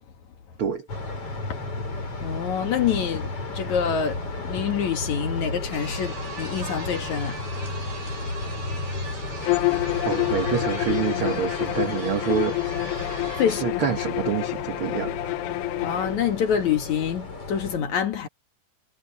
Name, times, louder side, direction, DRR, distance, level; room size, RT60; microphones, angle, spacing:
sound 1, 0.9-17.8, left 2 dB, 40° left, 7.3 m, -33 dB
voice 1, 2.2-7.5 13.2-13.9 15.8-18.3, left 8 dB, 55° left, 2.8 m, -26 dB
sound 2, 5.7-13.4, right 4 dB, 80° right, 9.6 m, -40 dB
Bowed string instrument, 9.4-16.2, left 23 dB, 80° left, 2.2 m, -28 dB
voice 2, 10.0-12.6 13.5-15.3, right 7 dB, 65° right, 1.3 m, -27 dB
omnidirectional pair, 4.2 m